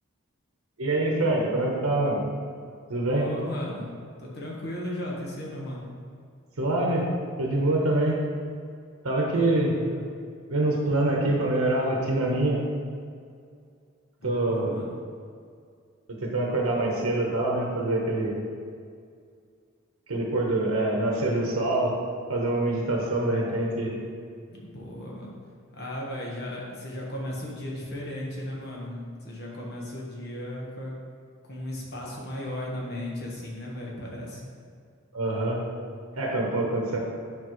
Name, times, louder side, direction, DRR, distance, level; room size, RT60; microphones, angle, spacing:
voice 1, 0.8-2.2 2.9-3.2 6.6-7.1 7.4-8.2 9.0-9.8 10.5-12.6 14.2-14.7 16.2-18.4 20.1-22.0 22.3-23.9 35.1-35.6 36.2-37.0, right 2 dB, 75° right, -2 dB, 1.0 m, -25 dB
voice 2, 3.1-5.9 9.3-10.0 14.2-14.9 24.5-25.4 25.7-30.9 31.4-34.4, left 1 dB, 45° left, -3 dB, 1.3 m, -36 dB
8.3 x 5.4 x 3.1 m, 2.2 s
head